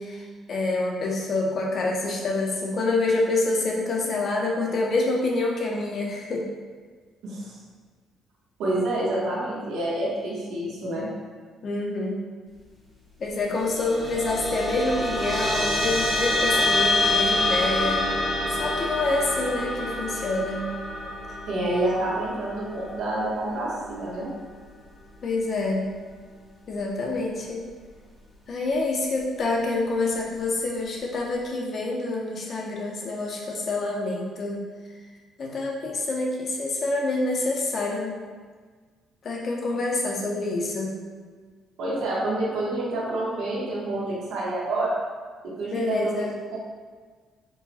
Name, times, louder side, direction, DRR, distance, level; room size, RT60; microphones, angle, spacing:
voice 1, 0.0-6.4 11.6-12.2 13.2-18.1 18.6-20.7 25.2-25.8 26.7-27.6 28.5-34.6 35.4-38.2 39.2-40.9 45.7-46.3, left 2 dB, 40° left, -1 dB, 0.7 m, -27 dB
voice 2, 7.2-7.6 8.6-11.1 21.5-24.3 41.8-45.0 45.4-46.6, right 1 dB, 80° right, -7 dB, 1.2 m, -28 dB
sound 1, 13.5-24.3, left 1 dB, ahead, 0.8 m, -26 dB
4.6 x 2.2 x 4.1 m, 1.5 s
cardioid pair, 160°, 0 cm